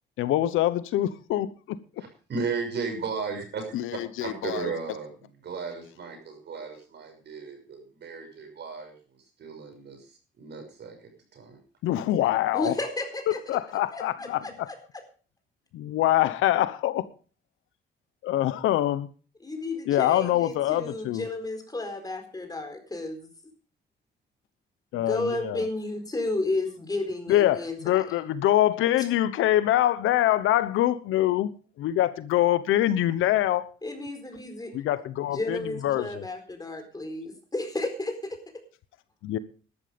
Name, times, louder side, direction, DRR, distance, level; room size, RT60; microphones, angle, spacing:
voice 1, 0.2-1.8 3.7-4.7 11.8-12.7 13.3-14.4 15.7-17.1 18.2-19.1 19.9-21.2 24.9-25.6 27.3-31.5 31.8-33.7 34.7-36.2 39.2-39.4, left 13 dB, 85° left, 15 dB, 1.0 m, -24 dB
voice 2, 2.0-9.0 9.4-10.1 10.4-11.0 11.3-11.6, right 5 dB, 60° right, 4 dB, 6.1 m, -35 dB
voice 3, 12.5-13.4 13.9-15.0 19.4-23.3 24.9-28.1 29.0-29.1 33.8-34.7 35.3-38.4, left 2 dB, 20° left, 5 dB, 4.4 m, -32 dB
13.0 x 12.0 x 5.2 m, 0.39 s
cardioid pair, 90°, 20 cm